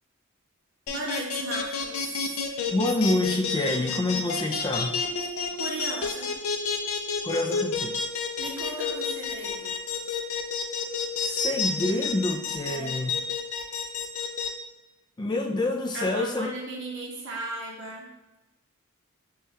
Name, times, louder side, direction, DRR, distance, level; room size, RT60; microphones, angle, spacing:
sound 1, 0.9-14.5, left 6 dB, 80° left, 0.5 m, -29 dB
voice 1, 0.9-2.2 5.6-6.3 8.4-9.8 12.7-13.0 15.9-18.1, right 2 dB, 60° right, -2 dB, 0.8 m, -36 dB
voice 2, 2.7-5.0 7.2-8.0 11.2-13.1 15.2-16.5, left 2 dB, 20° left, 3 dB, 0.3 m, -27 dB
6.2 x 2.3 x 2.8 m, 1.0 s
head